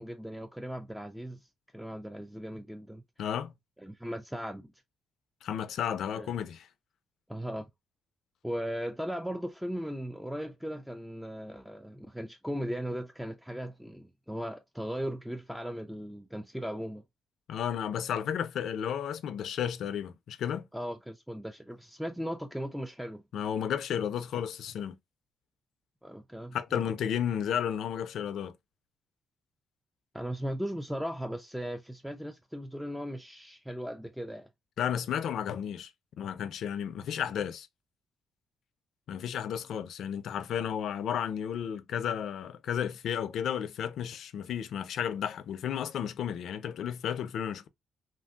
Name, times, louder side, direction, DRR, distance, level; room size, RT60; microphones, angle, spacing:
voice 1, 0.0-3.0 3.8-4.7 6.1-6.4 7.3-7.7 8.4-17.0 20.7-23.2 26.0-26.9 30.1-34.5, equal, ahead, 0.4 m, -37 dB
voice 2, 3.2-3.5 5.4-6.7 17.5-20.7 23.3-25.0 26.5-28.5 34.8-35.9 36.2-37.7 39.1-47.7, left 9 dB, 70° left, 0.4 m, -33 dB
3.0 x 2.6 x 2.3 m
cardioid pair, 90°, 0 cm